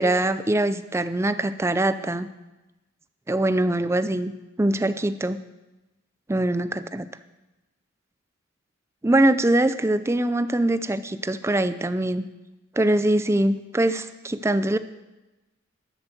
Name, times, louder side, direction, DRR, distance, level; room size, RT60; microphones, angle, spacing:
voice 1, 0.0-2.3 3.3-4.3 4.6-5.4 6.3-7.1 9.0-12.2 12.8-14.8, right 1 dB, 15° right, 12 dB, 0.4 m, -23 dB
12.5 x 7.1 x 6.8 m, 1.0 s
head